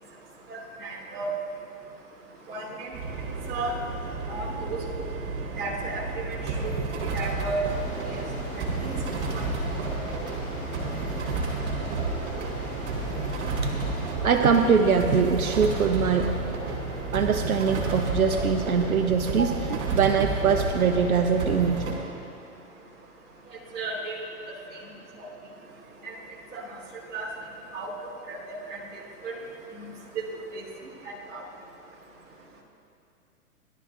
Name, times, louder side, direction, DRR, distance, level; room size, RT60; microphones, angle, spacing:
voice 1, 0.5-1.3 2.5-2.9 3.5-3.7 4.3-4.8 5.6-7.6 8.0-8.2 8.8-9.0 9.3-9.5 23.7-24.1 25.2-25.3 26.0-26.1 26.5-26.8 27.1-27.3 27.7-27.9 28.3-29.4 29.7-29.8 30.1-30.2 30.5-30.6 31.3-31.4, right 3 dB, 20° right, -6 dB, 2.8 m, -34 dB
sound 1, 2.9-21.9, right 3 dB, 50° right, 3.3 m, -31 dB
sound 2, 7.6-14.1, left 1 dB, 15° left, 2.9 m, -42 dB
voice 2, 13.6-16.3 17.1-22.0, right 6 dB, 75° right, 6 dB, 0.8 m, -23 dB
18.0 x 12.0 x 2.5 m, 2.6 s
figure-of-eight pair, 110°, 43 cm